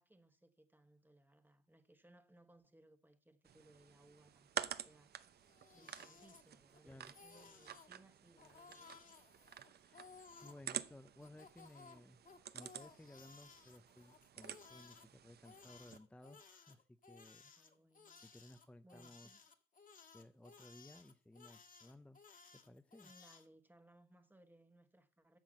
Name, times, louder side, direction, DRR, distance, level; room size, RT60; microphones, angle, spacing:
voice 1, 0.0-5.2 5.7-9.1 17.6-18.2 18.8-19.4 23.0-25.4, right 1 dB, 10° right, 1.2 m, -66 dB
sound 1, 3.5-16.0, right 9 dB, 55° right, 0.7 m, -50 dB
Crying sobbing, 5.3-6.8 7.0-7.9 8.4-10.6 11.2-15.1 15.4-23.5, left 5 dB, 40° left, 1.7 m, -60 dB
voice 2, 6.8-7.1 9.7-12.3 12.5-17.5 18.2-19.3 20.1-22.2 22.5-23.1, left 1 dB, 5° left, 0.5 m, -59 dB
9.1 x 5.7 x 7.6 m
cardioid pair, 90°, 20 cm